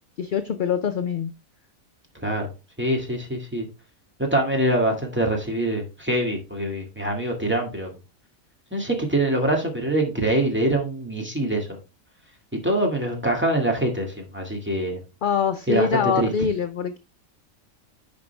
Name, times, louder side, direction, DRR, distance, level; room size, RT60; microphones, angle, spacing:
voice 1, 0.2-1.3 15.2-17.0, left 6 dB, 60° left, 8 dB, 0.5 m, -24 dB
voice 2, 2.1-2.5 2.8-3.7 4.2-7.9 8.7-11.8 12.6-15.0 15.7-15.9 16.2-16.3, right 1 dB, 10° right, 0 dB, 1.9 m, -24 dB
9.5 x 5.2 x 3.4 m, 0.29 s
omnidirectional pair, 1.4 m